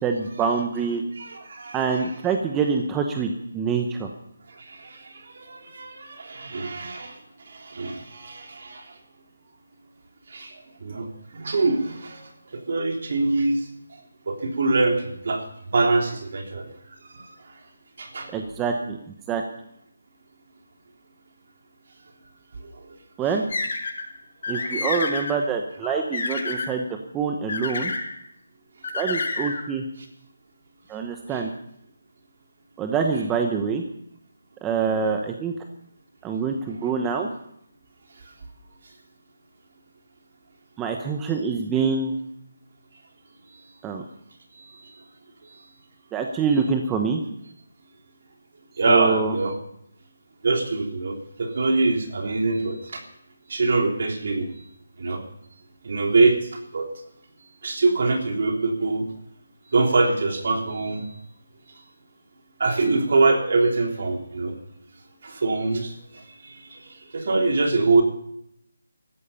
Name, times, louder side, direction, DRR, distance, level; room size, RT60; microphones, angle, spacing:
voice 1, 0.0-1.0 1.7-4.1 18.3-19.0 19.3-19.4 23.2-23.4 24.5-26.9 27.1-27.9 28.9-29.8 30.9-31.5 32.8-33.8 34.6-35.5 36.2-37.3 40.8-42.1 43.8-44.0 46.1-47.2 48.9-49.3, right 5 dB, 10° right, 4 dB, 0.9 m, -25 dB
voice 2, 1.2-2.0 4.5-7.2 7.5-9.0 10.3-13.7 14.3-15.4 15.7-16.7 17.0-17.3 18.0-18.4 22.6-22.9 24.5-25.0 31.3-31.4 44.6-44.9 48.8-49.5 50.4-53.0 53.5-54.5 55.0-55.2 55.8-56.9 57.6-59.0 59.7-61.1 62.6-64.6 65.2-68.0, right 3 dB, 50° right, 2 dB, 3.3 m, -24 dB
sound 1, 23.5-24.0 24.4-25.3 25.8-26.7 27.5-28.1 28.8-29.6, left 3 dB, 45° left, 6.4 m, -28 dB
17.5 x 14.0 x 5.6 m, 0.75 s
figure-of-eight pair, 170°, 0 cm